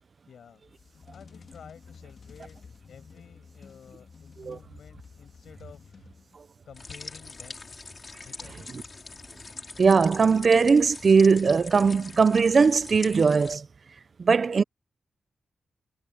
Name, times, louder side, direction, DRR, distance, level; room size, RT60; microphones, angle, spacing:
voice 1, 0.3-2.6 2.9-6.1 6.6-7.6 8.3-8.9, left 7 dB, 70° left, 6.5 m, -51 dB
sound 1, 0.6-6.6, left 5 dB, 50° left, 3.2 m, -51 dB
sound 2, 6.7-13.6, left 3 dB, 30° left, 2.7 m, -43 dB
voice 2, 9.8-13.7 14.2-14.6, right 5 dB, 40° right, 0.7 m, -20 dB
wide cardioid pair, 140°, 0 cm